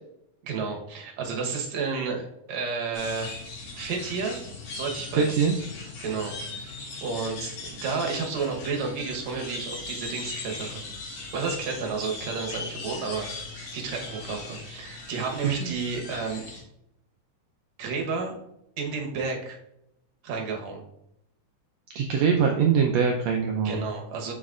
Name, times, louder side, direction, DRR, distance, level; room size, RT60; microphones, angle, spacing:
voice 1, 0.4-3.5 3.8-4.4 4.7-5.5 6.0-6.3 7.0-10.8 11.3-16.4 17.8-18.3 18.8-19.6 20.2-20.8 23.6-24.3, right 4 dB, 65° right, 1 dB, 2.2 m, -31 dB
sound 1, 2.9-16.6, left 3 dB, 90° left, 3.4 m, -39 dB
voice 2, 5.1-5.6 15.4-15.7 21.9-23.8, right 6 dB, 85° right, 2 dB, 1.5 m, -23 dB
7.0 x 6.3 x 2.4 m, 0.80 s
omnidirectional pair, 3.7 m